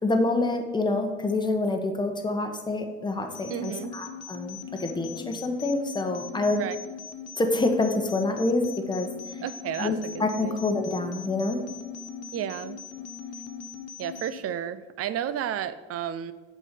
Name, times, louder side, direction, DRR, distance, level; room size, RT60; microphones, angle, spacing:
voice 1, 0.0-6.6 7.4-9.1 9.8-9.9 10.2-11.6, left 2 dB, 10° left, 4 dB, 1.0 m, -27 dB
sound 1, 3.3-14.4, left 6 dB, 45° left, 1.1 m, -40 dB
voice 2, 3.5-3.9 6.5-6.8 9.4-10.7 12.3-12.8 14.0-16.3, right 9 dB, 40° right, 14 dB, 0.5 m, -32 dB
7.0 x 4.5 x 5.2 m, 1.2 s
hypercardioid pair, 65°, 35 cm